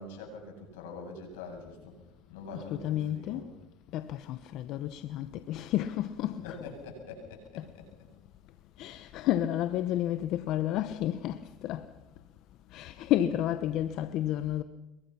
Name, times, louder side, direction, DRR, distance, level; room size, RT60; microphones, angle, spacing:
voice 1, 0.0-2.0 2.3-3.5 6.2-7.9, left 3 dB, 90° left, 8.0 m, -44 dB
voice 2, 2.5-3.4 3.9-6.6 7.6-7.7 8.8-11.9 12.7-14.6, left 12 dB, 60° left, 1.0 m, -31 dB
26.5 x 23.0 x 5.9 m
supercardioid pair, 110°, 0 cm